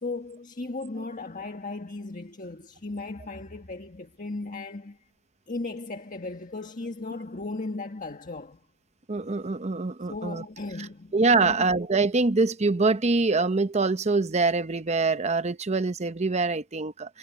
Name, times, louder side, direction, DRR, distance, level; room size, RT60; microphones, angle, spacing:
voice 1, 0.0-5.0 5.5-8.6 10.1-11.7, left 3 dB, 40° left, 1.6 m, -36 dB
voice 2, 9.1-10.4 11.1-17.2, right 3 dB, 30° right, 0.8 m, -24 dB
head